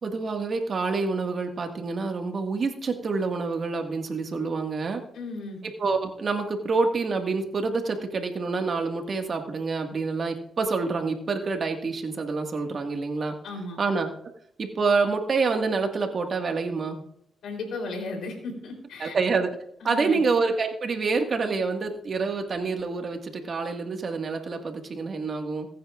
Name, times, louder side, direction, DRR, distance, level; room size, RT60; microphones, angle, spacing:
voice 1, 0.0-5.0 5.6-13.4 13.8-14.1 14.6-17.0 19.0-19.6 19.8-25.7, right 4 dB, 55° right, 4 dB, 1.8 m, -27 dB
voice 2, 5.1-5.6 13.4-13.8 17.4-19.2 19.8-20.2, left 3 dB, 75° left, 3 dB, 3.6 m, -35 dB
22.5 x 9.5 x 2.5 m, 0.73 s
supercardioid pair, 55°, 0 cm